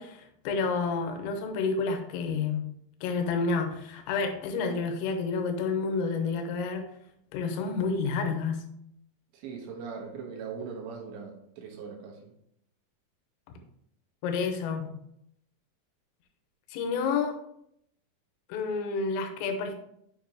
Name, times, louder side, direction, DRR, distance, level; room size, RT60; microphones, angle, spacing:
voice 1, 0.0-2.7 3.0-6.9 7.3-8.7 14.2-14.9 16.7-17.4 18.5-19.7, left 4 dB, 90° left, 5 dB, 3.5 m, -29 dB
voice 2, 9.3-12.3, right 5 dB, 70° right, 0 dB, 3.1 m, -40 dB
7.3 x 6.9 x 2.9 m, 0.74 s
omnidirectional pair, 5.9 m